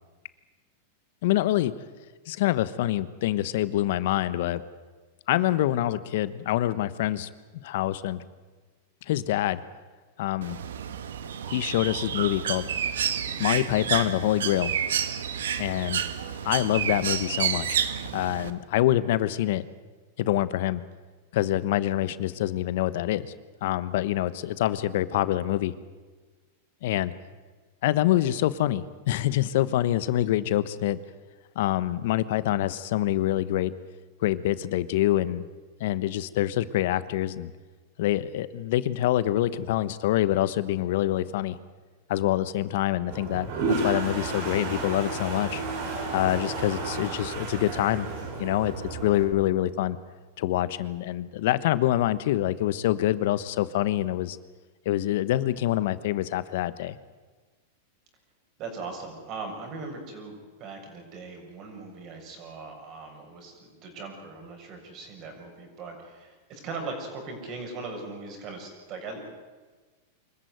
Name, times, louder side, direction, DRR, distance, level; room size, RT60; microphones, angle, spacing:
voice 1, 1.2-1.7 2.3-4.6 5.3-7.3 7.6-8.2 9.1-9.6 10.2-10.6 11.5-12.7 13.4-14.7 15.6-16.0 16.4-17.8 18.1-19.6 20.2-20.8 21.3-23.3 23.6-25.7 26.8-27.1 27.8-31.0 31.5-33.7 34.2-35.4 35.8-37.5 38.0-41.6 42.1-45.6 46.1-48.1 48.4-50.0 50.4-54.4 54.8-57.0, left 14 dB, 65° left, 15 dB, 1.1 m, -26 dB
Bird, 10.4-18.5, right 8 dB, 85° right, 1.5 m, -30 dB
Toilet flush, 43.1-49.2, right 3 dB, 60° right, 6.2 m, -32 dB
voice 2, 58.6-69.2, right 3 dB, 40° right, 3 dB, 6.9 m, -39 dB
24.5 x 14.5 x 9.4 m, 1.4 s
hypercardioid pair, 125°, 0 cm